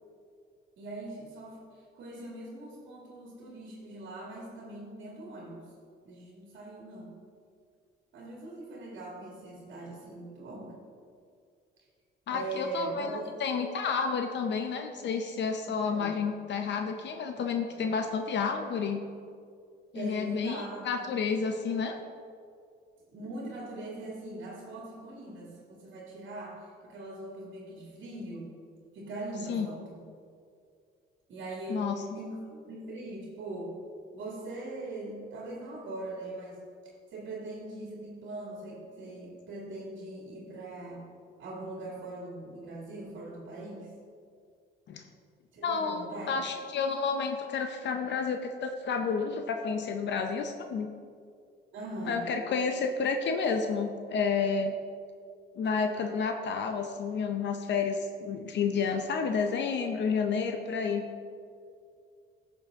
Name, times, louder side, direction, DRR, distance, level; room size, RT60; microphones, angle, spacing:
voice 1, 0.8-5.6 6.0-7.1 8.1-10.7 12.3-13.3 15.8-16.2 19.9-20.8 23.1-28.5 28.9-30.0 31.3-31.9 32.1-33.8 34.1-36.6 37.1-41.0 41.4-43.9 45.5-46.4 51.7-52.3 60.8-60.9, right 2 dB, 70° right, -3 dB, 2.0 m, -41 dB
voice 2, 12.3-19.0 19.9-22.0 29.5-29.7 31.7-31.9 44.9-45.0 45.6-50.9 52.1-54.8 55.6-61.0, left 5 dB, 65° left, 5 dB, 0.7 m, -30 dB
11.0 x 6.8 x 3.6 m, 2.3 s
cardioid pair, 90°, 20 cm